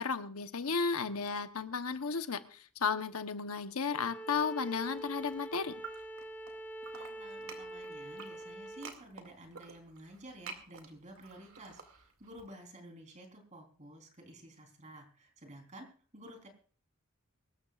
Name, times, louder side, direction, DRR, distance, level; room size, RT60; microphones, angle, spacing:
voice 1, 0.0-5.8, left 5 dB, 80° left, 9 dB, 1.0 m, -34 dB
Bowed string instrument, 3.9-8.9, right 1 dB, 10° left, 2.0 m, -45 dB
sound 1, 4.9-6.5 6.8-12.4, right 5 dB, 70° right, 2.4 m, -50 dB
voice 2, 6.9-15.9 16.1-16.5, right 1 dB, 35° right, 4 dB, 3.8 m, -52 dB
24.5 x 13.5 x 2.4 m, 0.40 s
head